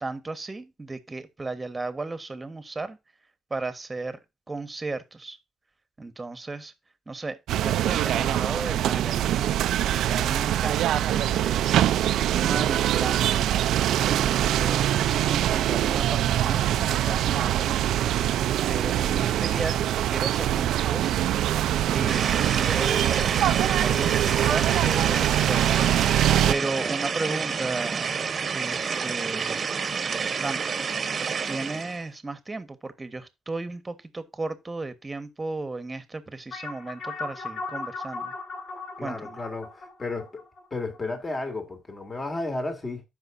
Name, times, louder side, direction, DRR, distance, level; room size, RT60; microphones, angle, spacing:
voice 1, 0.0-3.0 3.5-4.2 4.5-5.4 6.0-6.7 7.1-9.5 10.0-13.4 13.8-18.2 18.7-21.1 21.9-25.7 26.2-28.1 28.5-29.7 30.4-30.6 31.2-38.3 39.0-39.4, right 3 dB, 20° right, 1.3 m, -35 dB
sound 1, 7.5-26.5, right 12 dB, 80° right, 0.5 m, -23 dB
sound 2, 22.1-32.0, right 6 dB, 45° right, 1.0 m, -29 dB
sound 3, 36.5-41.3, left 3 dB, 65° left, 3.3 m, -37 dB
voice 2, 39.0-40.4 40.7-43.0, left 2 dB, 30° left, 2.8 m, -33 dB
14.0 x 5.4 x 2.6 m
cardioid pair, 90°, 0 cm